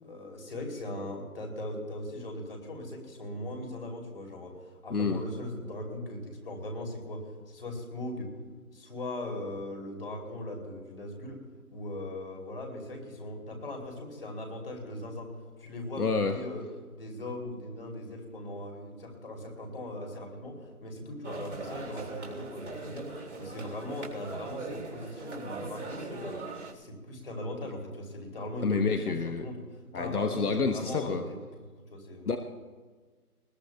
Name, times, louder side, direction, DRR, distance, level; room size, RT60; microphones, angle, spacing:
voice 1, 0.0-8.3 8.7-11.4 11.7-15.3 15.6-16.6 16.9-23.1 23.4-26.4 26.7-31.4 31.9-32.4, left 1 dB, 40° left, 2 dB, 3.1 m, -39 dB
voice 2, 4.9-5.2 16.0-16.3 28.6-29.5 29.9-31.2 32.3-32.4, left 4 dB, 75° left, 6 dB, 1.1 m, -28 dB
sound 1, 21.2-26.7, right 3 dB, 70° right, 3.4 m, -40 dB
20.5 x 18.5 x 2.3 m, 1.5 s
figure-of-eight pair, 170°, 45 cm